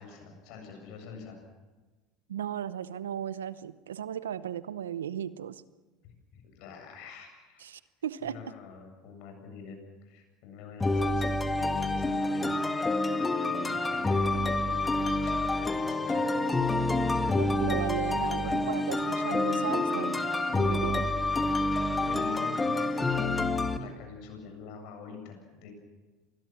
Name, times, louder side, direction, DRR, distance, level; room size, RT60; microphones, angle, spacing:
voice 1, 0.0-1.4 6.0-7.7 8.2-12.5 13.3-17.4 18.0-18.8 20.5-20.6 21.9-25.7, left 5 dB, 65° left, 4 dB, 7.6 m, -46 dB
voice 2, 2.3-5.6 7.6-8.4 17.3-20.1 20.6-21.1, right 10 dB, 90° right, 16 dB, 0.8 m, -36 dB
sound 1, 10.8-23.8, left 2 dB, 15° left, 1.8 m, -28 dB
27.0 x 20.5 x 6.1 m, 1.2 s
hypercardioid pair, 80°, 0 cm